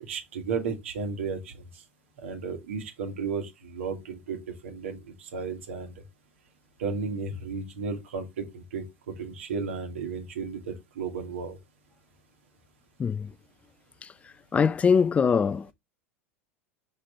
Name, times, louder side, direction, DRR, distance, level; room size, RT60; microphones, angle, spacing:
voice 1, 0.1-1.5 2.2-5.0 5.3-5.9 6.8-8.8 9.2-11.6, right 5 dB, 65° right, 1.9 m, -33 dB
voice 2, 13.0-13.3 14.5-15.7, left 6 dB, 20° left, 0.4 m, -22 dB
6.4 x 3.9 x 4.3 m
figure-of-eight pair, 85°, 7 cm